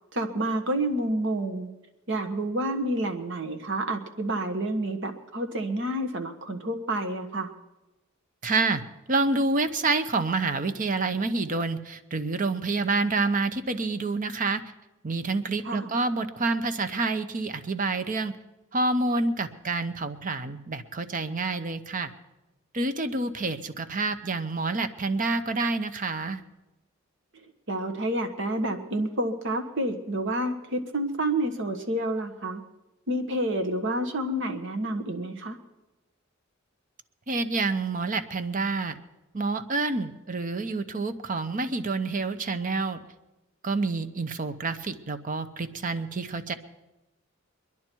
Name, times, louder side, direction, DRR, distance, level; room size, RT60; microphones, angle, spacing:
voice 1, 0.1-1.7 2.1-7.5 15.6-15.9 27.7-32.6 33.1-35.6, right 1 dB, 60° right, 7 dB, 1.4 m, -29 dB
voice 2, 8.4-8.8 9.1-14.6 15.0-18.3 18.7-22.1 22.7-26.4 37.3-39.0 39.3-43.0 43.6-46.5, right 3 dB, 40° right, 11 dB, 0.8 m, -28 dB
24.0 x 11.0 x 4.6 m, 1.0 s
head